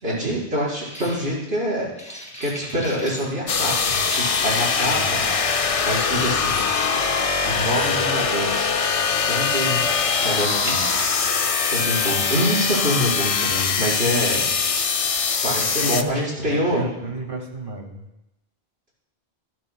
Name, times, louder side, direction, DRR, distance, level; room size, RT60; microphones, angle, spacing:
voice 1, 0.0-1.9 2.4-5.2 5.8-6.6 7.4-8.7 9.3-9.8 10.2-10.9 11.7-14.5 15.4-16.9, equal, 75° right, -6 dB, 5.4 m, -25 dB
sound 1, 0.8-1.2 2.0-3.3 3.7-5.1 5.8-7.1 7.7-9.0 10.0-11.4 11.9-12.5 13.2-14.5 15.1-16.0, equal, 5° left, 2.4 m, -38 dB
sound 2, 3.5-16.0, left 5 dB, 40° left, 0.6 m, -22 dB
voice 2, 4.8-5.1 7.4-7.7 12.6-12.7 15.8-18.1, right 1 dB, 55° right, 2 dB, 2.2 m, -31 dB
25.0 x 12.0 x 2.3 m, 0.91 s
omnidirectional pair, 1.1 m